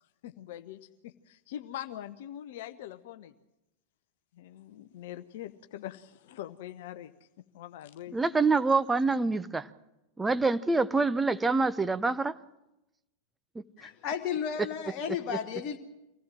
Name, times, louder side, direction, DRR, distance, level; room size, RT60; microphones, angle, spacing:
voice 1, 0.2-3.3 4.4-7.1 7.5-8.2, left 12 dB, 55° left, 0.8 m, -43 dB
voice 2, 8.1-9.7 10.2-12.4, right 3 dB, 10° right, 0.8 m, -26 dB
voice 3, 13.8-15.8, left 8 dB, 35° left, 1.3 m, -33 dB
24.5 x 16.5 x 7.6 m
figure-of-eight pair, 90°, 0 cm